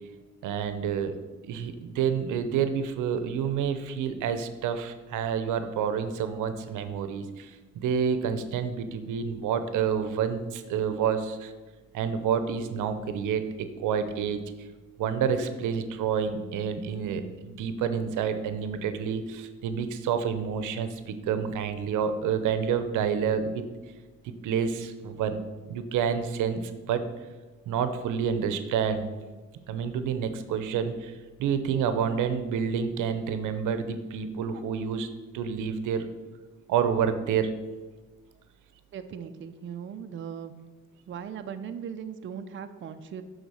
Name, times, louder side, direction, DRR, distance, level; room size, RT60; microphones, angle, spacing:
voice 1, 0.4-1.1 1.4-11.5 11.9-14.4 15.0-23.6 24.2-25.4 25.7-26.6 26.9-27.1 27.7-29.1 29.7-31.1 31.4-35.1 35.3-36.1 36.7-37.5, right 7 dB, 85° right, 10 dB, 0.7 m, -28 dB
voice 2, 38.9-40.5 41.1-43.2, right 7 dB, 40° right, 8 dB, 0.5 m, -38 dB
8.0 x 4.0 x 6.3 m, 1.3 s
cardioid pair, 90°, 30 cm